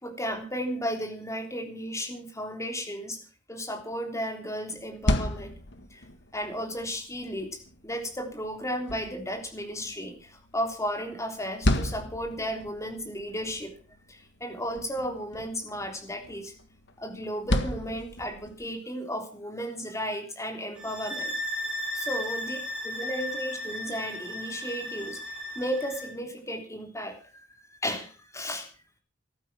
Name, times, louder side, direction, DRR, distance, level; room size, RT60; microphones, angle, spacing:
voice 1, 0.0-3.2 3.5-5.5 5.9-6.1 6.3-7.6 7.8-13.7 14.1-16.5 17.0-21.3 21.9-22.6 22.8-27.4 27.7-28.7, equal, 15° left, 4 dB, 3.4 m, -34 dB
sound 1, 4.8-18.7, left 1 dB, 65° left, 1.7 m, -34 dB
sound 2, 20.8-26.1, left 1 dB, 5° right, 5.1 m, -35 dB
14.5 x 12.0 x 6.0 m, 0.38 s
head